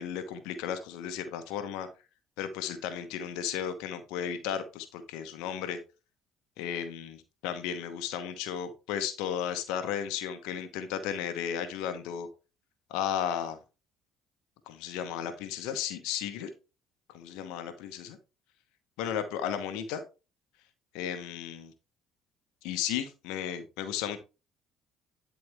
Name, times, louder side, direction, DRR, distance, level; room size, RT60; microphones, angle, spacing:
voice 1, 0.0-1.9 2.4-5.8 6.6-12.3 12.9-13.6 14.7-16.5 17.1-18.2 19.0-20.0 20.9-21.7 22.6-24.2, left 9 dB, 75° left, 9 dB, 1.0 m, -34 dB
10.5 x 4.2 x 3.4 m, 0.29 s
hypercardioid pair, 55°, 0 cm